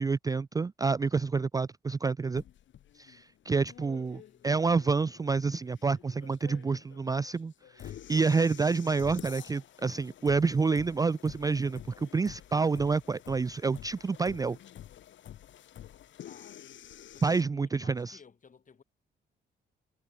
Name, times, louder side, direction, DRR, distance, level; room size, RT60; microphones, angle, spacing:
voice 1, 0.0-2.4 3.0-14.6 17.2-18.2, right 4 dB, 20° right, 0.4 m, -28 dB
sound 1, 2.4-17.4, left 11 dB, 70° left, 2.6 m, -49 dB
voice 2, 3.6-6.1 16.3-16.6 17.1-18.8, left 6 dB, 40° left, 7.2 m, -59 dB
cardioid pair, 90°, 20 cm